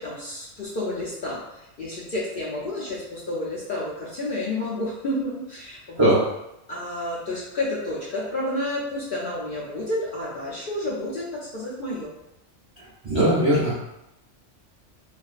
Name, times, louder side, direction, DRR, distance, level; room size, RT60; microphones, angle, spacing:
voice 1, 0.0-6.2 6.7-12.1, left 1 dB, 60° left, -6 dB, 0.6 m, -30 dB
voice 2, 13.0-13.7, right 1 dB, 30° right, -9 dB, 0.6 m, -19 dB
2.4 x 2.3 x 2.3 m, 0.87 s
omnidirectional pair, 1.2 m